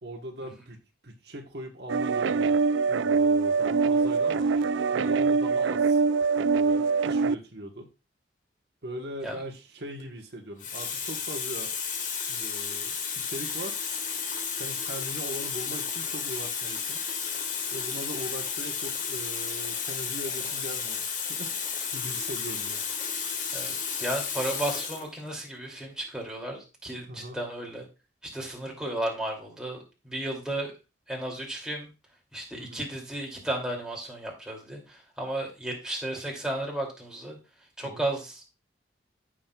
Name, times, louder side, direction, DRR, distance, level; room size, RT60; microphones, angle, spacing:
voice 1, 0.0-0.8 1.0-2.6 2.9-4.5 4.9-6.0 6.4-7.9 8.8-11.7 12.3-13.8 14.4-17.0 17.7-21.0 21.3-22.8 27.1-27.4 32.6-32.8 37.8-38.0, right 1 dB, 60° right, 1 dB, 1.3 m, -40 dB
sound 1, 1.9-7.3, right 4 dB, 85° right, 0.4 m, -24 dB
Water tap faucet, 9.8-10.0 10.6-25.1 26.0-26.2, left 6 dB, 45° left, 1.6 m, -32 dB
voice 2, 23.5-27.9 28.2-30.7 31.1-31.9 32.3-37.4 37.8-38.4, right 1 dB, 5° right, -2 dB, 2.7 m, -34 dB
15.0 x 6.3 x 2.4 m, 0.29 s
head